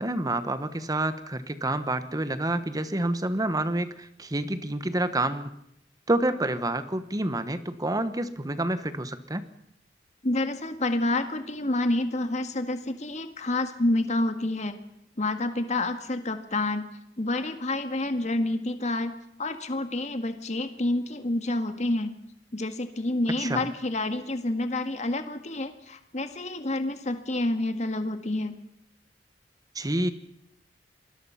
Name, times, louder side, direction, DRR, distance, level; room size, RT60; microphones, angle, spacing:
voice 1, 0.0-5.5 6.1-9.5 23.4-23.7 29.7-30.1, right 1 dB, 20° right, 11 dB, 1.2 m, -28 dB
voice 2, 10.2-14.7 15.2-16.8 17.2-22.1 22.5-28.5, left 2 dB, 40° left, 8 dB, 1.8 m, -28 dB
27.0 x 21.0 x 5.8 m, 0.77 s
head